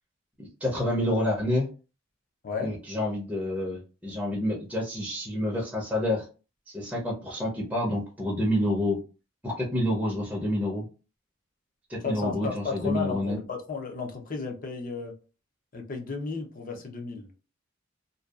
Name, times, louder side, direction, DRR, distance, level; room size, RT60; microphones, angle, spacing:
voice 1, 0.4-1.7 2.6-6.2 6.7-9.0 9.4-10.9 11.9-13.4, left 1 dB, 5° right, 0.5 m, -28 dB
voice 2, 12.0-15.1 15.7-17.3, left 5 dB, 40° left, 0.5 m, -34 dB
2.6 x 2.2 x 2.3 m
head